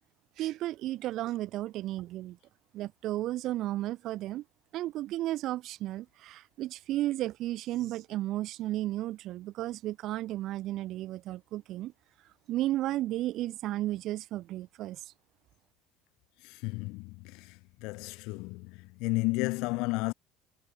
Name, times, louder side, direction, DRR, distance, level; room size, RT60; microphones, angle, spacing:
voice 1, 0.4-2.4 2.7-4.4 4.7-11.9 12.5-15.0, right 15 dB, 60° right, 4.1 m, -33 dB
voice 2, 16.4-20.1, left 25 dB, 70° left, 2.2 m, -33 dB
hypercardioid pair, 80°, 0 cm